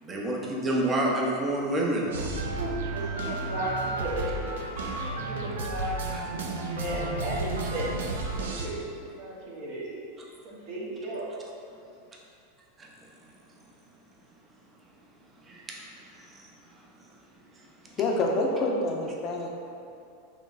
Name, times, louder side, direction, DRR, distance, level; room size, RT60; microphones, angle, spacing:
voice 1, 0.0-2.1 6.1-6.2 12.8-12.9 15.5-15.8, right 1 dB, 20° right, -2 dB, 0.6 m, -28 dB
sound 1, 2.1-8.7, right 2 dB, 90° right, 0.4 m, -32 dB
voice 2, 2.4-4.6 5.2-6.0 6.7-7.9 8.4-8.8 9.1-10.0 10.4-11.3, right 1 dB, 60° right, -5 dB, 1.0 m, -34 dB
voice 3, 17.9-19.5, left 2 dB, 40° left, 0 dB, 0.5 m, -27 dB
4.4 x 3.1 x 2.5 m, 2.6 s
hypercardioid pair, 120°, 0 cm